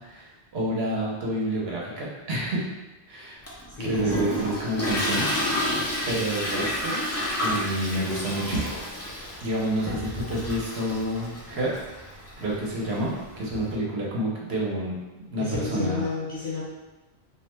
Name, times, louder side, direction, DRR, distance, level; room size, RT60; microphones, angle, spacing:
voice 1, 0.0-2.6 3.1-3.4 3.8-5.3 6.1-7.0 7.4-8.6 9.4-11.7 12.4-13.1 13.4-15.0 15.3-16.0, right 1 dB, 75° right, -4 dB, 1.0 m, -28 dB
Toilet flush, 3.5-13.7, left 1 dB, 25° left, 0.3 m, -31 dB
voice 2, 3.8-4.5 15.4-16.6, left 3 dB, 40° left, -7 dB, 0.8 m, -31 dB
2.5 x 2.2 x 3.0 m, 1.1 s
omnidirectional pair, 1.1 m